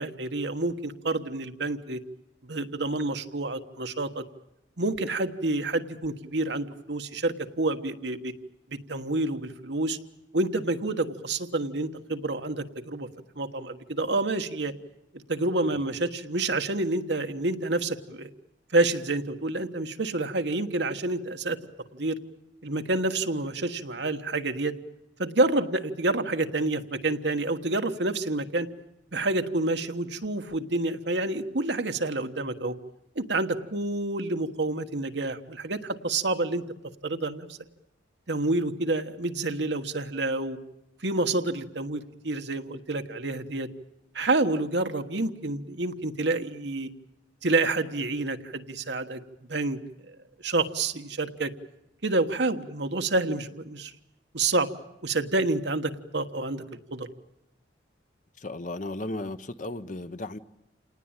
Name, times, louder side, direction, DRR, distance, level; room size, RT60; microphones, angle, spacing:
voice 1, 0.0-2.0 2.5-4.2 4.8-8.3 8.7-10.0 10.3-13.1 13.3-14.7 15.3-18.3 18.7-21.6 21.9-22.2 22.6-24.7 25.2-28.7 29.1-32.7 33.1-36.6 37.0-37.6 38.3-40.6 41.0-43.7 44.1-46.9 47.4-49.2 49.5-49.8 50.1-50.2 50.4-51.5 52.0-53.9 54.3-54.7 55.0-56.6 56.9-57.1, right 2 dB, 60° right, 7 dB, 1.4 m, -28 dB
voice 2, 58.4-60.4, left 2 dB, 40° left, 11 dB, 0.9 m, -35 dB
28.0 x 19.0 x 9.0 m, 0.87 s
head